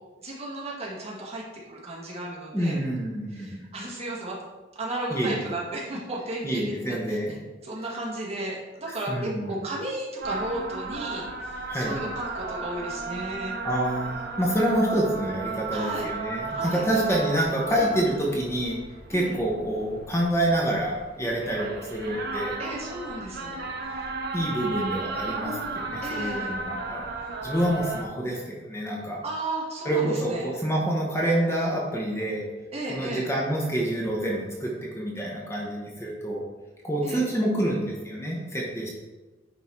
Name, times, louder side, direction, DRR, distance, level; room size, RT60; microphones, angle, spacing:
voice 1, 0.2-2.8 3.4-4.4 4.8-7.2 7.6-13.5 15.7-16.1 16.5-17.2 17.7-17.9 19.1-19.4 22.6-23.6 26.0-26.5 29.2-30.5 32.7-33.3 37.0-37.2, right 1 dB, 35° right, -4 dB, 1.8 m, -34 dB
voice 2, 2.5-3.5 5.1-5.4 6.4-7.4 8.9-9.6 11.7-12.0 13.6-18.8 19.1-22.6 24.3-27.1 27.4-29.2 29.8-32.4 32.9-36.4 36.8-38.9, right 1 dB, 15° left, -2 dB, 1.1 m, -27 dB
sound 1, 10.2-28.0, right 3 dB, 55° right, 0.9 m, -34 dB
9.6 x 4.0 x 4.5 m, 1.2 s
head